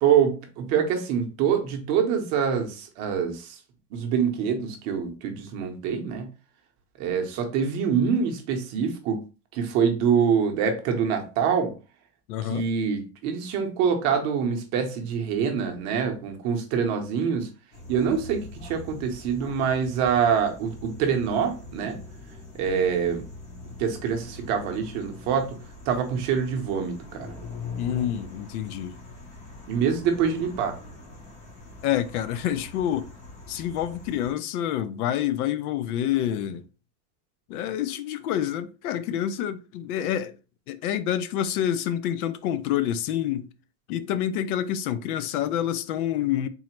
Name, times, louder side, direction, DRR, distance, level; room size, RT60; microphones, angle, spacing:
voice 1, 0.0-3.6 3.9-6.3 7.0-9.2 9.5-11.7 12.4-17.5 17.9-22.0 22.6-23.2 23.8-25.6 25.9-27.3 29.7-30.8, right 7 dB, 35° right, 0.7 m, -25 dB
voice 2, 12.3-12.7 27.8-28.9 31.8-33.1 33.5-36.6 37.5-40.3 40.7-43.5 43.9-46.5, left 10 dB, 75° left, 0.6 m, -27 dB
sound 1, 17.7-34.3, left 3 dB, 15° left, 0.5 m, -42 dB
3.9 x 2.0 x 4.3 m
supercardioid pair, 165°, 45 cm